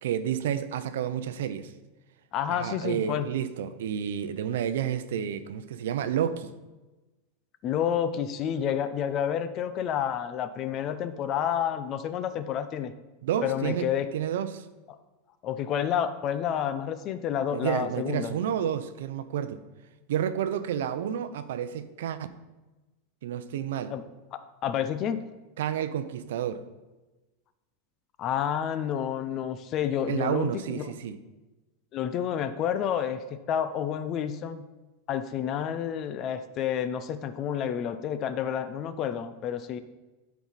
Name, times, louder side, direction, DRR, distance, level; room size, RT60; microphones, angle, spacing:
voice 1, 0.0-1.7 2.5-6.5 13.2-14.7 17.5-19.6 20.1-22.3 23.2-24.0 25.6-26.6 30.1-31.2, right 9 dB, 75° right, 0.6 m, -30 dB
voice 2, 2.3-3.3 7.6-12.9 13.4-14.1 15.4-18.4 23.9-24.0 24.3-25.2 28.2-30.9 31.9-33.2 33.5-34.6 35.1-39.8, left 9 dB, 25° left, 0.4 m, -29 dB
12.0 x 4.7 x 4.1 m
supercardioid pair, 175°, 0 cm